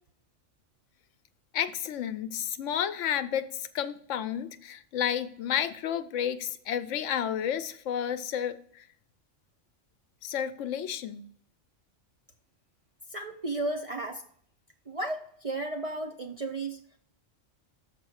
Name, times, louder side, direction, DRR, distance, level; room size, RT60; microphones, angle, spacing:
voice 1, 1.5-8.8 10.2-11.2, left 9 dB, 75° left, 11 dB, 0.9 m, -31 dB
voice 2, 13.1-14.2 14.9-16.8, right 2 dB, 55° right, 3 dB, 0.4 m, -34 dB
6.7 x 4.8 x 6.3 m, 0.62 s
omnidirectional pair, 1.3 m